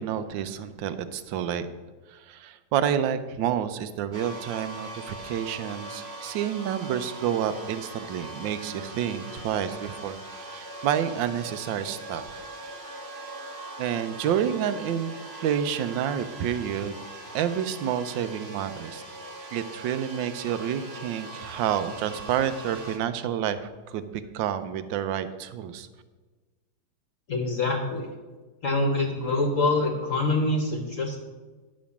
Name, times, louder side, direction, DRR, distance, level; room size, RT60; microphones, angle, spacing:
voice 1, 0.0-1.7 2.1-12.4 13.8-17.0 17.3-19.0 19.5-25.9, right 9 dB, 75° right, 11 dB, 1.3 m, -29 dB
sound 1, 4.1-23.0, right 2 dB, 40° right, 1.1 m, -41 dB
voice 2, 27.3-28.1 28.6-31.2, left 2 dB, 50° left, 3 dB, 1.1 m, -25 dB
10.5 x 5.2 x 7.1 m, 1.3 s
omnidirectional pair, 2.1 m